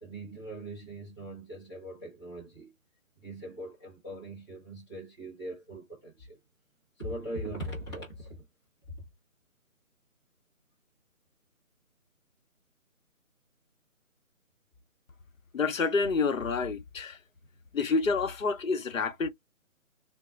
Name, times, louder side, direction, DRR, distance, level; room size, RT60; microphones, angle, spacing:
voice 1, 0.0-2.7 3.2-6.4 7.0-8.5 8.9-9.0, right 1 dB, 20° left, 0.7 m, -41 dB
voice 2, 15.5-17.2 17.7-19.3, left 4 dB, 70° left, 0.8 m, -28 dB
3.9 x 2.1 x 2.4 m
figure-of-eight pair, 160°, 42 cm